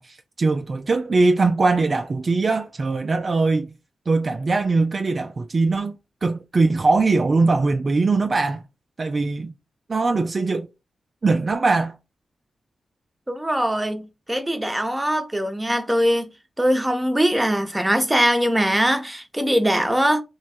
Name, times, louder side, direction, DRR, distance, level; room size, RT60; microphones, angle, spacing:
voice 1, 0.0-3.7 4.1-8.6 9.0-9.5 9.9-10.7 11.2-12.0, right 3 dB, 50° right, 0.4 m, -21 dB
voice 2, 13.3-16.3 16.6-20.2, equal, 15° right, 0.8 m, -21 dB
3.1 x 2.2 x 4.2 m
supercardioid pair, 45°, 0 cm